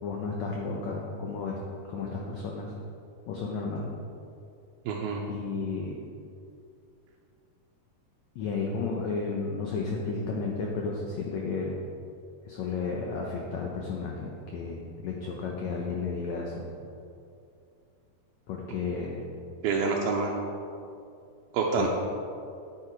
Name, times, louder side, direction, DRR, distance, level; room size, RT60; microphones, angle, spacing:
voice 1, 0.0-1.6 1.9-2.7 3.3-3.9 5.3-6.0 8.3-11.8 12.5-16.7 18.5-19.2 21.7-21.9, left 4 dB, 90° left, -1 dB, 1.5 m, -33 dB
voice 2, 4.9-5.2 19.6-20.3 21.5-21.9, right 4 dB, 80° right, -1 dB, 2.6 m, -27 dB
9.4 x 8.9 x 4.6 m, 2.5 s
omnidirectional pair, 4.4 m